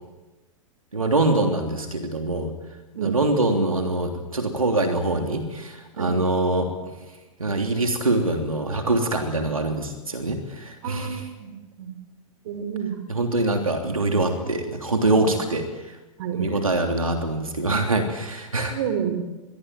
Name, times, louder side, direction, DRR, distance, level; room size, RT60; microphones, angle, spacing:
voice 1, 0.9-2.5 3.0-6.7 7.4-11.3 13.1-16.0 16.3-18.8, right 2 dB, 80° right, 4 dB, 3.3 m, -24 dB
voice 2, 10.8-11.5 11.8-11.9 12.5-13.0 15.2-15.3 16.2-16.6 18.7-19.4, right 8 dB, 50° right, 9 dB, 4.2 m, -29 dB
26.5 x 22.5 x 9.4 m, 1.1 s
figure-of-eight pair, 100°, 18 cm